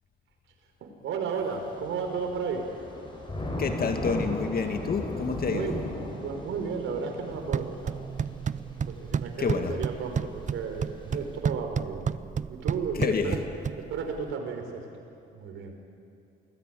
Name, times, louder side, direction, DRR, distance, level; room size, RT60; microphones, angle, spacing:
voice 1, 0.8-2.7 5.5-5.8 6.2-8.0 8.9-12.1 12.5-13.4 13.8-14.8 15.3-15.7, right 5 dB, 80° right, 4 dB, 4.7 m, -33 dB
Thunder / Rain, 1.4-11.4, left 1 dB, 25° left, 7.3 m, -38 dB
voice 2, 3.6-5.7 9.4-9.8 12.9-13.4, left 5 dB, 50° left, 6 dB, 2.2 m, -28 dB
sound 1, 7.3-14.3, right 7 dB, 40° right, 0.7 m, -32 dB
28.0 x 19.5 x 9.3 m, 2.6 s
cardioid pair, 90°, 20 cm